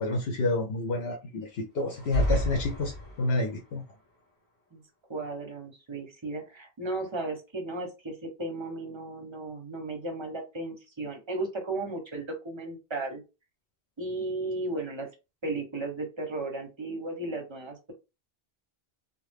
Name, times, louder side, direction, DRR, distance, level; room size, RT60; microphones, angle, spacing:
voice 1, 0.0-3.8, left 2 dB, 75° left, 3 dB, 0.8 m, -29 dB
sound 1, 1.9-3.5, equal, 10° left, 1.4 m, -30 dB
voice 2, 5.1-13.2 14.0-15.1 15.4-17.9, right 2 dB, 30° right, 3 dB, 0.7 m, -35 dB
2.8 x 2.0 x 3.3 m, 0.28 s
omnidirectional pair, 1.1 m